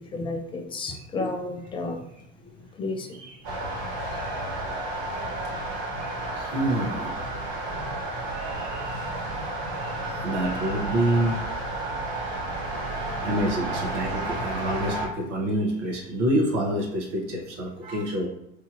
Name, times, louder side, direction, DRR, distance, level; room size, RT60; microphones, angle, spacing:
voice 1, 0.0-2.1 2.8-3.2 8.9-9.4 12.5-12.6 13.4-13.5, left 2 dB, 15° left, 4 dB, 0.4 m, -33 dB
sound 1, 3.4-15.1, right 2 dB, 50° right, 1.0 m, -31 dB
voice 2, 5.7-7.2 8.2-9.1 9.7-11.6 12.5-18.3, right 1 dB, 70° right, -2 dB, 1.2 m, -28 dB
3.2 x 2.6 x 2.5 m, 0.83 s
hypercardioid pair, 85°, 38 cm